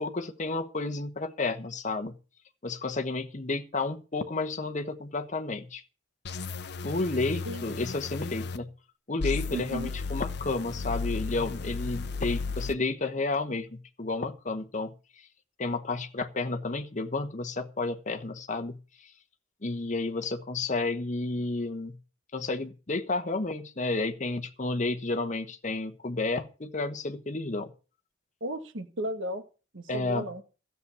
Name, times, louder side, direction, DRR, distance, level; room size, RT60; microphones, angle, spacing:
voice 1, 0.0-2.1 2.6-5.8 6.8-8.7 9.1-14.9 15.6-18.8 19.6-22.0 22.3-27.7 29.9-30.3, left 3 dB, 40° left, 1.0 m, -31 dB
sound 1, 6.2-8.6 9.2-12.7, left 4 dB, 55° left, 0.8 m, -34 dB
voice 2, 9.5-9.9 28.4-29.4 29.7-30.4, equal, 85° right, 1.7 m, -34 dB
13.5 x 6.9 x 8.2 m
head